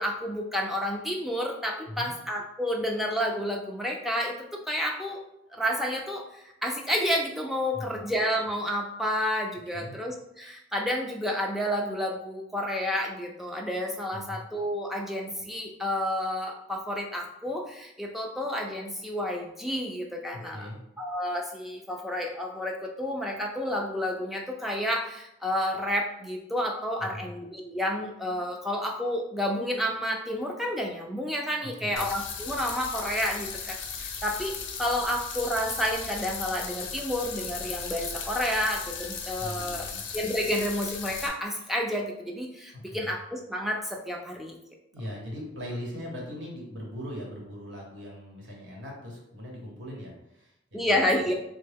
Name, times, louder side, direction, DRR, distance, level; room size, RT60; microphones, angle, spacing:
voice 1, 0.0-5.2 5.5-20.7 21.0-34.5 34.8-44.6 50.7-51.3, equal, ahead, 0 dB, 0.3 m, -30 dB
voice 2, 14.1-14.4 20.3-20.8 27.0-27.3 31.6-32.1 39.4-40.0 42.8-43.1 44.9-51.3, equal, 65° right, -2 dB, 1.0 m, -40 dB
sound 1, 32.0-41.3, left 6 dB, 70° left, 0.5 m, -37 dB
3.6 x 2.1 x 3.4 m, 0.81 s
head